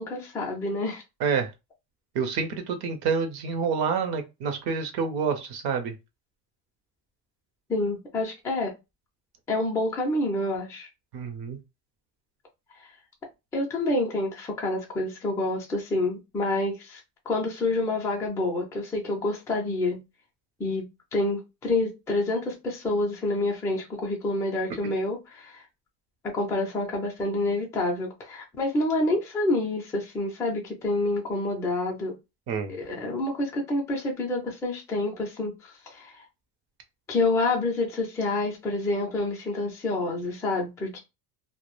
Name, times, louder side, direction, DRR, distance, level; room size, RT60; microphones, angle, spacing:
voice 1, 0.0-1.0 7.7-8.7 9.5-10.9 13.5-17.0 17.3-20.0 20.6-25.6 26.2-32.2 32.7-36.2 37.1-41.0, left 2 dB, 5° left, 0.3 m, -28 dB
voice 2, 2.1-5.9 11.1-11.6 24.8-24.9 32.5-32.7, right 6 dB, 55° right, 0.6 m, -28 dB
2.2 x 2.1 x 2.9 m
cardioid pair, 150°, 45 cm